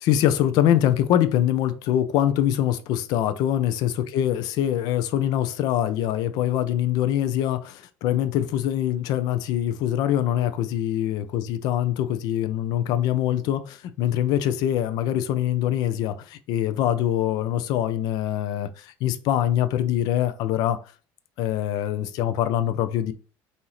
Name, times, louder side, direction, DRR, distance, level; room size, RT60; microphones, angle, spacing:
voice 1, 0.0-20.8 21.4-23.1, left 11 dB, 60° left, 0.5 m, -24 dB
5.6 x 2.7 x 3.0 m
cardioid pair, 150°, 8 cm